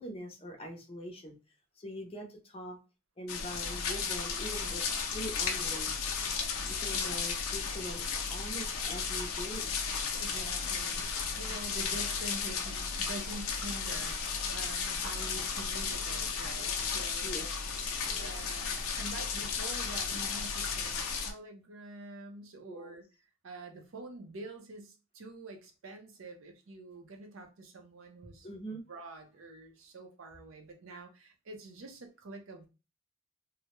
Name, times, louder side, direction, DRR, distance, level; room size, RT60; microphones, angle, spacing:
voice 1, 0.0-1.3 1.8-2.8 3.2-5.9 6.6-9.8 17.2-17.5 18.0-18.2 22.7-23.0 28.4-28.8, equal, 25° left, 0.5 m, -43 dB
sound 1, 3.3-21.3, left 5 dB, 75° left, 0.5 m, -34 dB
voice 2, 10.1-11.1 11.4-14.2 14.5-17.4 18.2-23.0 23.4-32.7, right 2 dB, 65° right, 0.5 m, -46 dB
2.2 x 2.0 x 2.9 m
head